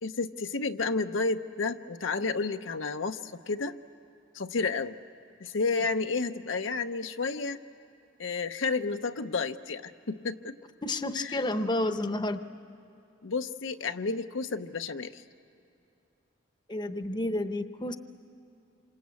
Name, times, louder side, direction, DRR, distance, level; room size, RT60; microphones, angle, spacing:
voice 1, 0.0-3.7 4.3-5.0 5.4-7.6 8.2-10.6 11.1-11.4 13.2-15.2, left 4 dB, 85° left, 7 dB, 0.8 m, -31 dB
voice 2, 10.8-12.4 16.7-18.0, left 1 dB, 25° left, 9 dB, 0.8 m, -30 dB
27.5 x 26.0 x 8.3 m, 2.8 s
head